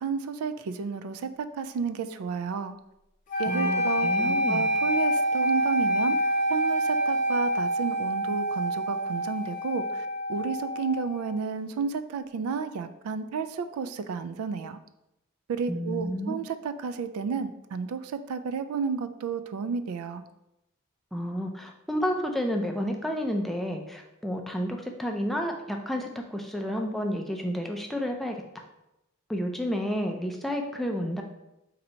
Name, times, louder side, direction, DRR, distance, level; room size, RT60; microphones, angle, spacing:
voice 1, 0.0-2.7 3.4-14.8 15.5-20.2, right 5 dB, 80° right, 11 dB, 0.3 m, -32 dB
sound 1, 3.3-11.4, equal, 35° left, 0.7 m, -27 dB
voice 2, 3.5-4.7 15.7-16.4 21.1-28.4 29.3-31.2, equal, ahead, 2 dB, 0.3 m, -30 dB
3.9 x 2.7 x 4.3 m, 0.90 s
head